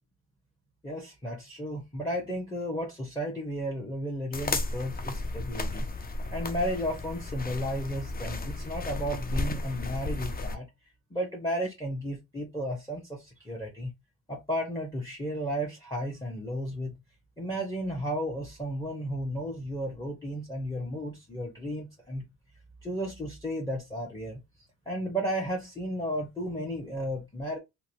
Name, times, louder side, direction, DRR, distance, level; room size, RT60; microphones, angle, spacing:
voice 1, 0.8-5.8 6.3-10.7 11.1-13.9 14.3-16.9 17.4-22.2 22.8-24.4 24.9-27.6, equal, 10° left, 0.9 m, -33 dB
sound 1, 4.3-10.6, left 2 dB, 25° left, 0.5 m, -34 dB
2.8 x 2.2 x 2.7 m
hypercardioid pair, 45°, 36 cm